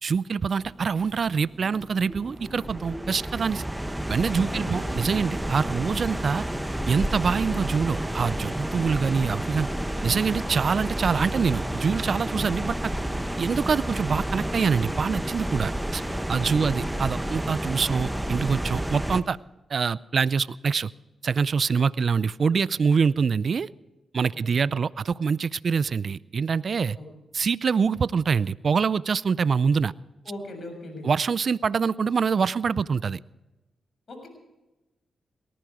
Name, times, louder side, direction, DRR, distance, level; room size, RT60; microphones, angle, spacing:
voice 1, 0.0-3.6 4.1-6.4 6.9-9.7 10.0-12.9 13.4-16.0 16.3-19.4 19.7-20.9 21.2-23.7 24.1-27.0 27.3-29.9 31.0-33.2, right 5 dB, 60° right, 20 dB, 0.4 m, -25 dB
sound 1, 0.6-19.2, right 1 dB, 5° right, 1.2 m, -30 dB
voice 2, 4.4-4.8 16.4-16.8 24.3-24.7 26.9-27.0 30.2-31.1 34.1-34.3, left 2 dB, 55° left, 4 dB, 6.9 m, -40 dB
18.5 x 14.0 x 4.9 m, 1.0 s
supercardioid pair, 50°, 0 cm